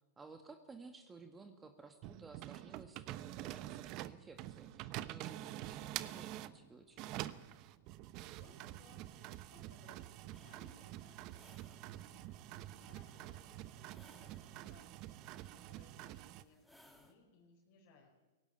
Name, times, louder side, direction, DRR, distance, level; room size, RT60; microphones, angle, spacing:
voice 1, 0.2-7.2, right 4 dB, 15° right, 7 dB, 1.7 m, -56 dB
sound 1, 2.0-6.6 6.9-16.4, right 15 dB, 45° right, 0.9 m, -47 dB
voice 2, 8.2-15.0 15.5-18.1, left 3 dB, 55° left, -3 dB, 4.7 m, -65 dB
sound 2, 10.3-17.1, equal, ahead, 2.9 m, -67 dB
19.5 x 17.0 x 9.1 m, 1.3 s
hypercardioid pair, 110°, 0 cm